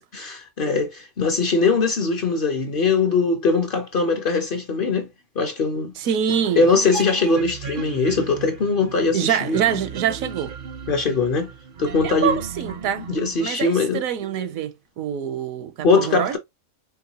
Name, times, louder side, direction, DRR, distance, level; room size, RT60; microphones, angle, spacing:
voice 1, 0.1-5.1 5.4-5.9 6.6-9.6 10.9-11.5 11.8-12.4 13.0-14.0 15.8-16.4, left 4 dB, 50° left, 0.7 m, -21 dB
voice 2, 6.0-6.6 9.1-10.5 12.0-13.1 13.4-16.4, right 9 dB, 80° right, 1.0 m, -25 dB
sound 1, 6.3-13.4, right 5 dB, 55° right, 0.6 m, -36 dB
4.7 x 2.8 x 2.8 m
omnidirectional pair, 1.5 m